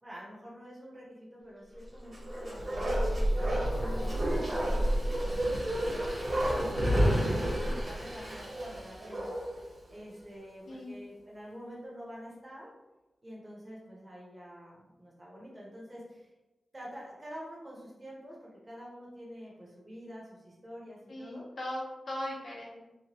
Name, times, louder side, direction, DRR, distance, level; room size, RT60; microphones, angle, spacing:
voice 1, 0.0-12.7 13.2-16.3 16.7-21.5, equal, 25° right, -5 dB, 0.8 m, -47 dB
Bark, 2.0-9.6 9.9-10.0, equal, 50° right, 1.0 m, -30 dB
voice 2, 10.7-11.0 21.1-22.8, left 1 dB, 60° left, -4 dB, 0.8 m, -39 dB
2.9 x 2.1 x 2.9 m, 1.0 s
wide cardioid pair, 105°, 0 cm